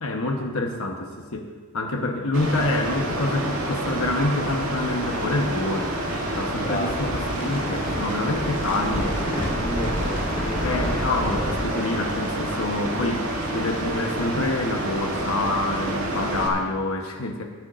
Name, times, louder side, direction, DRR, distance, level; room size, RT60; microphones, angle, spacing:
voice 1, 0.0-1.5 1.7-5.9 6.4-9.3 10.6-17.4, left 2 dB, 80° left, 3 dB, 1.0 m, -27 dB
Mechanical fan, 2.3-16.5, right 1 dB, 65° right, 2.5 m, -28 dB
voice 2, 6.3-7.1 9.2-10.7, left 1 dB, 40° left, 3 dB, 1.1 m, -33 dB
sound 1, 6.6-11.7, equal, 25° left, 4.1 m, -30 dB
20.0 x 11.5 x 2.5 m, 1.5 s
head